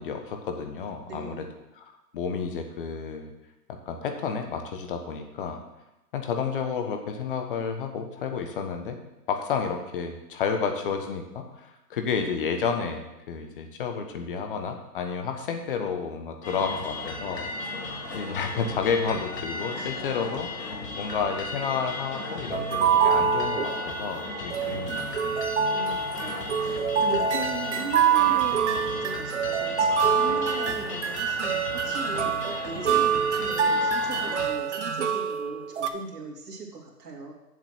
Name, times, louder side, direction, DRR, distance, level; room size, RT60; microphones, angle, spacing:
voice 1, 0.0-1.5 1.8-3.3 3.9-5.6 6.1-9.0 9.3-20.5 21.0-25.3, left 6 dB, 35° left, 5 dB, 1.3 m, -31 dB
voice 2, 1.1-1.5 19.7-20.2 25.7-37.3, right 4 dB, 70° right, -1 dB, 3.0 m, -39 dB
sound 1, 16.4-34.5, left 1 dB, 75° left, 2.8 m, -35 dB
sound 2, 22.5-24.1 24.5-35.9, right 6 dB, 45° right, 0.8 m, -25 dB
8.3 x 7.3 x 6.1 m, 0.94 s
figure-of-eight pair, 140°, 49 cm